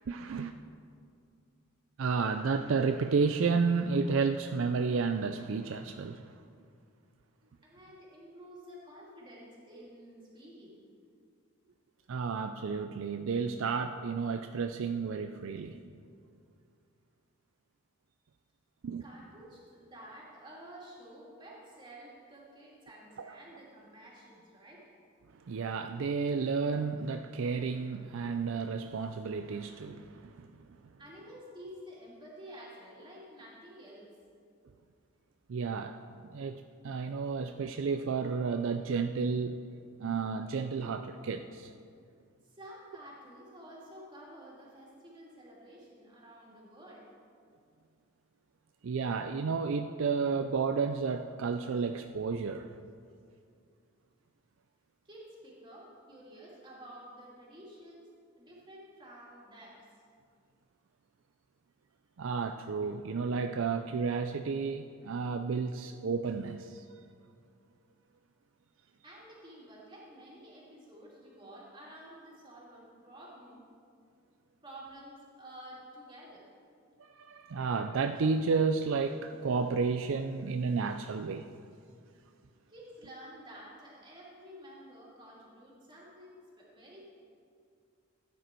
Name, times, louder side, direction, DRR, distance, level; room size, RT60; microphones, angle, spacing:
voice 1, 0.1-0.5 2.0-6.3 12.1-15.8 18.8-19.0 23.2-23.3 25.5-30.5 35.5-36.0 36.3-39.6 40.0-41.7 48.8-52.7 62.2-66.8 77.0-81.5, right 5 dB, 60° right, 7 dB, 0.4 m, -32 dB
voice 2, 7.6-10.8 19.0-24.9 31.0-34.1 42.4-47.1 55.0-58.1 58.4-59.9 69.0-73.6 74.6-76.5 82.7-87.0, equal, 20° right, -5 dB, 2.7 m, -51 dB
15.0 x 9.4 x 4.5 m, 2.3 s
head